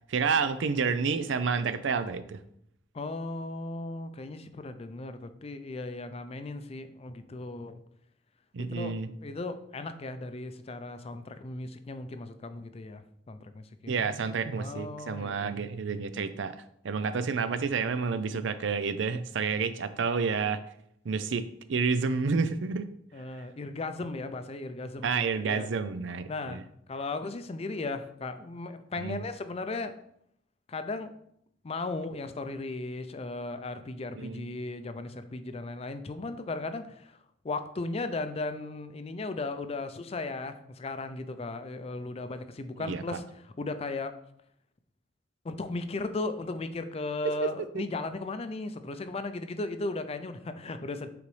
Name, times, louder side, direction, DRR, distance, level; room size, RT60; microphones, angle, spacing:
voice 1, 0.1-2.4 8.5-9.1 13.9-16.6 16.8-20.6 21.0-22.9 25.0-26.6 29.0-29.2 34.2-34.5 42.8-43.0 47.2-47.5 47.8-47.9, right 5 dB, 80° right, 12 dB, 0.5 m, -29 dB
voice 2, 2.9-7.8 8.6-8.9 9.2-13.0 13.3-14.1 14.6-15.5 21.2-21.3 23.1-25.7 26.3-26.6 26.9-29.9 30.7-31.1 31.6-37.2 37.4-44.2 45.4-51.1, left 3 dB, 35° left, 9 dB, 0.5 m, -36 dB
8.4 x 3.9 x 3.2 m, 0.72 s
head